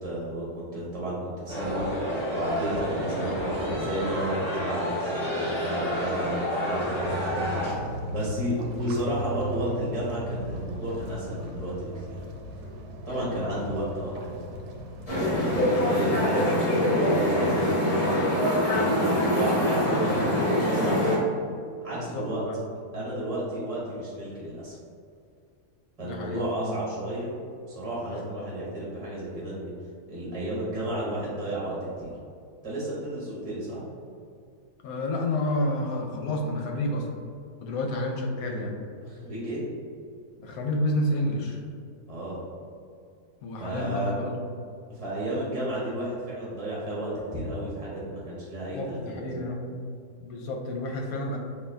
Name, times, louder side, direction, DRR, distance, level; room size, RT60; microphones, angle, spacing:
voice 1, 0.0-1.8 2.3-12.2 13.1-14.3 15.3-18.2 18.7-21.0 21.8-22.4 22.9-24.8 26.0-27.3 27.7-29.7 30.1-32.1 32.6-33.8 39.0-39.6 42.1-42.4 43.6-44.1 44.9-49.3, right 1 dB, 25° right, -7 dB, 1.2 m, -32 dB
sound 1, 1.5-7.7, equal, 5° right, 1.3 m, -29 dB
sound 2, 7.0-15.6, equal, 70° right, 1.1 m, -36 dB
voice 2, 13.0-13.5 15.8-16.2 21.9-22.6 26.0-26.7 28.0-28.2 34.8-37.1 37.6-38.7 40.4-41.6 43.4-44.5 48.7-49.7 50.2-51.4, left 1 dB, 70° left, 1 dB, 1.1 m, -30 dB
sound 3, 15.1-21.2, left 1 dB, 25° left, 1.3 m, -24 dB
6.8 x 2.7 x 2.6 m, 2.3 s
omnidirectional pair, 1.6 m